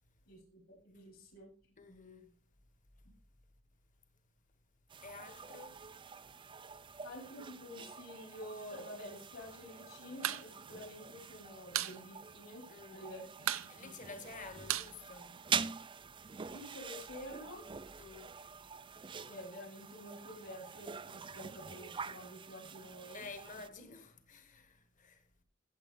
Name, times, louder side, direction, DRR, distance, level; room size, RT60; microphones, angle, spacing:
voice 1, 0.3-1.5 7.0-13.2 13.8-14.1 16.5-17.7 19.3-23.3, left 1 dB, 70° left, 5.7 m, -49 dB
voice 2, 1.8-2.4 5.0-5.8 12.7-13.1 13.7-15.5 18.0-18.4 23.1-25.2, left 4 dB, 40° left, 1.5 m, -51 dB
sound 1, 4.9-23.7, right 6 dB, 25° right, 0.4 m, -45 dB
sound 2, 10.1-10.5 10.7-10.8 11.1-12.0 12.3-12.4 12.7-13.1 13.4-15.8, right 11 dB, 75° right, 0.7 m, -37 dB
15.0 x 8.0 x 3.7 m
head